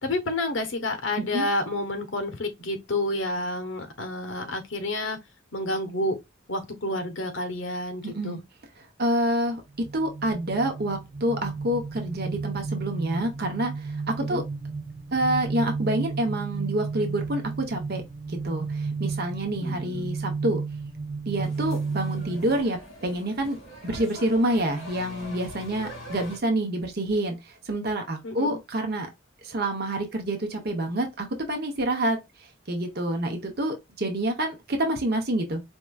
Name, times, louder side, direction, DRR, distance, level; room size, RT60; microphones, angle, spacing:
voice 1, 0.0-5.2 5.5-6.2 6.5-8.4 14.3-14.4 19.6-20.1 28.2-28.6, left 1 dB, 65° left, 1.1 m, -29 dB
voice 2, 1.2-1.5 8.0-8.4 9.0-14.4 15.1-18.0 18.3-20.6 21.3-23.6 23.8-27.4 27.6-29.1 29.4-32.2 32.7-35.6, right 1 dB, 50° right, 0.9 m, -27 dB
sound 1, 9.8-22.6, right 4 dB, 25° right, 0.5 m, -33 dB
sound 2, 21.3-26.4, equal, 35° left, 2.3 m, -43 dB
4.5 x 2.9 x 2.4 m
head